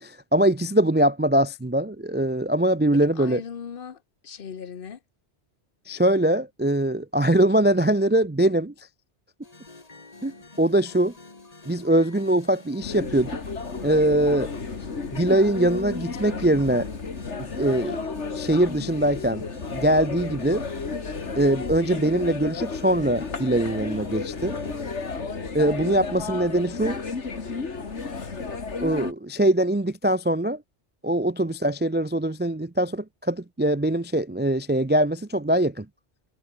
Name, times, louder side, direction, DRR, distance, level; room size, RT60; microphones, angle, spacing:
voice 1, 0.0-3.4 5.9-8.7 10.2-11.1 11.7-13.4 13.8-14.5 15.1-16.9 17.6-18.0 18.3-19.4 19.7-20.6 21.4-24.6 25.5-27.0 28.8-30.6 31.0-35.9, right 1 dB, 15° right, 0.3 m, -22 dB
voice 2, 2.9-5.0, left 7 dB, 50° left, 1.1 m, -38 dB
sound 1, 9.4-25.2, left 3 dB, 35° left, 2.0 m, -48 dB
sound 2, 12.8-29.1, left 4 dB, 75° left, 2.5 m, -33 dB
omnidirectional pair, 1.2 m